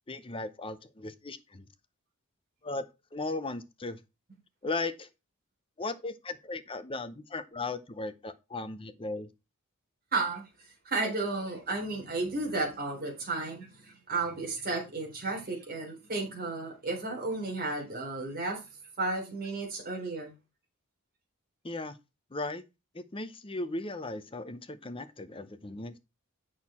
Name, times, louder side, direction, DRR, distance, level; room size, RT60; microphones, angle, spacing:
voice 1, 0.1-1.7 2.6-4.0 4.6-5.1 5.8-9.3 21.6-22.0 22.3-22.6 22.9-26.0, left 2 dB, 25° left, 0.7 m, -37 dB
voice 2, 10.1-10.4 10.9-18.6 19.0-20.3, right 3 dB, 40° right, 3.8 m, -33 dB
7.9 x 6.2 x 4.3 m
head